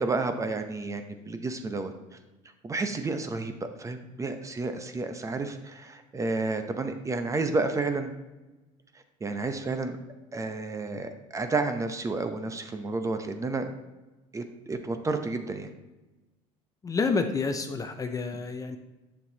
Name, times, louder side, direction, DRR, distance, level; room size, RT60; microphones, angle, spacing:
voice 1, 0.0-1.9 2.6-8.1 9.2-10.0 10.3-13.7 14.3-15.7, right 3 dB, 20° right, 7 dB, 0.7 m, -31 dB
voice 2, 16.8-18.8, left 4 dB, 20° left, 6 dB, 0.5 m, -29 dB
7.4 x 6.8 x 2.8 m, 1.1 s
supercardioid pair, 105°, 16 cm